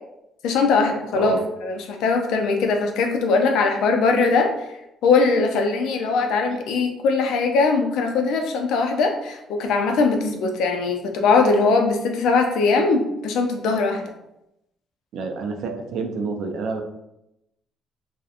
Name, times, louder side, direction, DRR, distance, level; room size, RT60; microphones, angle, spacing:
voice 1, 0.4-1.3 1.6-4.5 5.0-14.0, left 4 dB, 80° left, 3 dB, 0.4 m, -20 dB
voice 2, 15.1-16.8, right 4 dB, 75° right, 4 dB, 0.4 m, -28 dB
2.7 x 2.0 x 2.4 m, 0.86 s
supercardioid pair, 75°, 0 cm